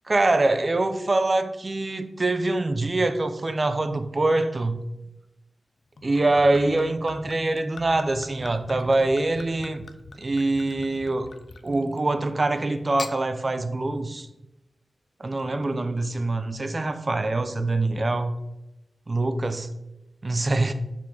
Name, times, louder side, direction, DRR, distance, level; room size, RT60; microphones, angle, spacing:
voice 1, 0.1-4.8 6.0-9.9 10.2-11.3 11.6-14.3 15.2-18.4 19.1-19.7 20.2-20.7, right 2 dB, 35° right, 0.4 m, -24 dB
Gurgling / Chink clink / Liquid, 6.0-12.1 12.8-13.2, left 3 dB, 60° left, 0.3 m, -43 dB
4.6 x 4.1 x 2.7 m
wide cardioid pair, 95°, 0 cm